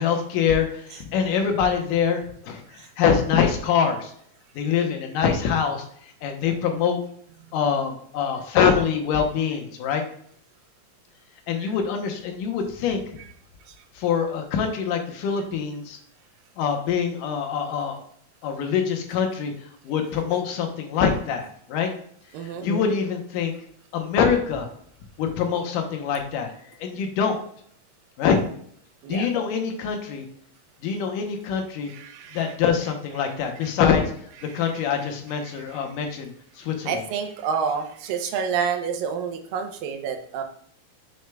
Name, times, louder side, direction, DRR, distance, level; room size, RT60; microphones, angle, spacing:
voice 1, 0.0-4.1 4.6-7.0 7.5-10.0 11.5-13.2 13.9-16.0 16.6-18.0 18.4-21.9 22.4-23.5 23.9-24.7 25.2-27.4 28.2-28.4 29.1-30.3 30.8-31.9 32.3-34.0 34.5-37.0, left 7 dB, 75° left, 4 dB, 2.4 m, -24 dB
voice 2, 22.3-22.7 28.2-28.4 29.0-29.3 31.9-32.4 33.6-33.7 34.5-34.7 35.5-35.8 36.9-40.4, right 6 dB, 85° right, 5 dB, 2.5 m, -29 dB
6.8 x 6.2 x 2.3 m, 0.62 s
omnidirectional pair, 3.9 m